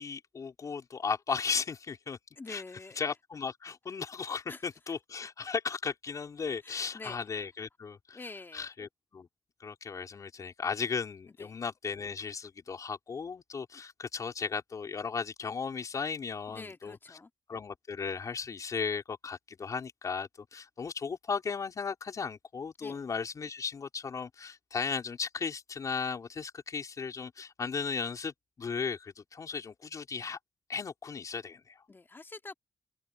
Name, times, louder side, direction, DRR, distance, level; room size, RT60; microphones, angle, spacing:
voice 1, 0.0-2.2 2.5-2.6 3.0-8.2 8.5-9.3 9.6-17.2 17.5-30.4 30.7-31.8, left 5 dB, 50° left, 4.3 m, -36 dB
voice 2, 2.4-3.0 4.5-4.6 6.6-7.2 8.1-8.7 11.4-11.5 16.5-17.3 22.8-23.0 31.9-32.5, left 3 dB, 30° left, 2.4 m, -46 dB
cardioid pair, 70°, 7 cm